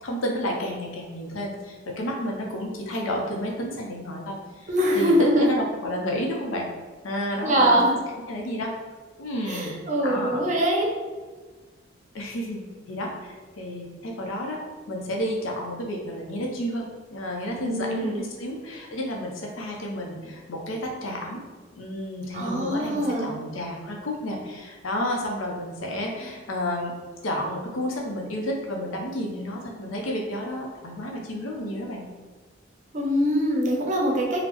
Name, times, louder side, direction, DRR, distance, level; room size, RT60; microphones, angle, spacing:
voice 1, 0.0-4.7 4.9-6.7 7.0-8.0 8.3-8.7 9.2-9.8 10.0-10.4 12.1-14.6 14.9-21.4 21.7-26.9 27.2-32.1, equal, 90° left, -1 dB, 0.6 m, -31 dB
voice 2, 4.7-5.5 7.4-7.9 9.5-10.9 17.6-18.2 22.3-23.4 32.9-34.4, equal, 40° right, -2 dB, 0.5 m, -23 dB
4.0 x 2.0 x 2.9 m, 1.3 s
head